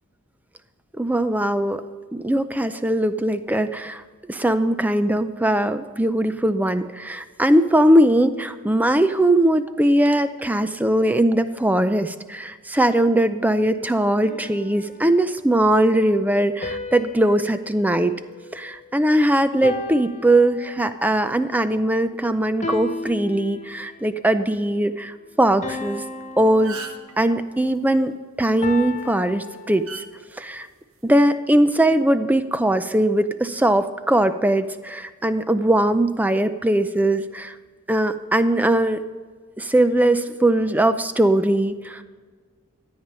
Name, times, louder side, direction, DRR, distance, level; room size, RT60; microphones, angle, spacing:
voice 1, 1.0-1.8 2.1-4.0 4.3-18.2 18.5-26.0 26.4-26.8 27.2-29.9 30.4-30.7 31.0-37.5 37.9-39.0 39.6-42.0, right 1 dB, 10° right, 11 dB, 0.5 m, -20 dB
sound 1, 14.2-15.4 16.6-19.1 19.6-21.1 22.6-24.1 25.6-27.5 28.6-30.3, left 3 dB, 35° left, 0.7 m, -35 dB
sound 2, 26.1-26.2 26.5-27.1 28.8-29.0 29.9-30.0 31.1-31.3, right 4 dB, 65° right, 1.1 m, -35 dB
13.5 x 8.9 x 5.5 m, 1.5 s
head